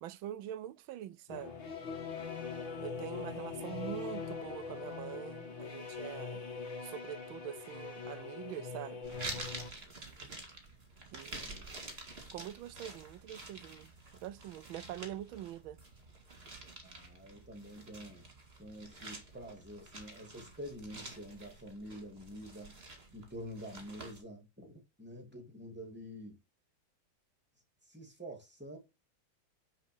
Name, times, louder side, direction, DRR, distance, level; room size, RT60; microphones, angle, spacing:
voice 1, 0.0-1.5 2.8-6.4 6.8-9.0 11.1-11.7 12.3-13.9 14.2-15.8, right 12 dB, 85° right, 1.4 m, -44 dB
sound 1, 1.3-9.7, left 5 dB, 70° left, 2.2 m, -42 dB
sound 2, 9.0-24.2, right 2 dB, 30° right, 2.3 m, -49 dB
voice 2, 11.3-11.6 16.8-18.3 18.6-22.7 23.1-26.4 27.9-28.8, equal, 5° right, 2.6 m, -47 dB
9.7 x 4.4 x 6.1 m
omnidirectional pair, 2.1 m